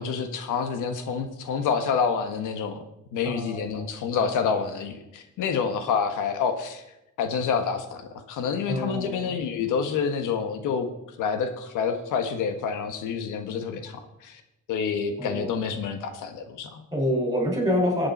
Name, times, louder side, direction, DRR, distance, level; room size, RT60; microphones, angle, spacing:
voice 1, 0.0-2.8 3.1-6.8 7.2-8.0 8.3-10.9 11.2-14.4 14.7-16.8, left 6 dB, 85° left, 7 dB, 1.3 m, -28 dB
voice 2, 3.2-3.9 8.7-9.3 15.2-15.6 16.9-18.1, equal, 10° right, 0 dB, 5.2 m, -27 dB
19.0 x 8.7 x 4.2 m, 0.91 s
cardioid pair, 90°, 30 cm